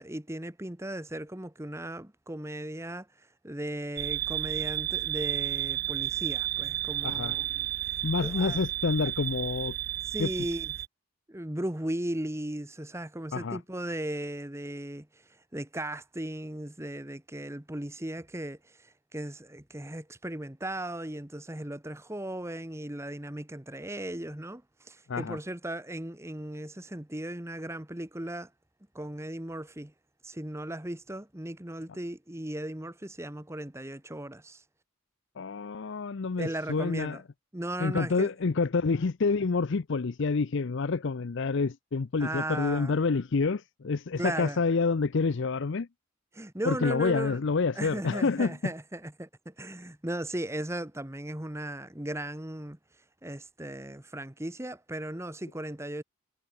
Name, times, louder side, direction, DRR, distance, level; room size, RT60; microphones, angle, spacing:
voice 1, 0.0-8.6 10.1-10.7 11.3-28.5 28.9-29.9 30.2-34.6 36.4-37.2 37.5-38.3 42.2-43.0 44.2-44.6 46.3-47.4 47.8-52.8 53.2-56.0, right 1 dB, 10° right, 1.1 m, -37 dB
sound 1, 4.0-10.9, right 12 dB, 45° right, 0.4 m, -32 dB
voice 2, 7.0-7.3 8.0-9.8 10.2-10.3 13.3-13.6 25.1-25.4 35.4-37.2 37.8-45.9 46.7-48.6, left 4 dB, 55° left, 0.5 m, -28 dB
head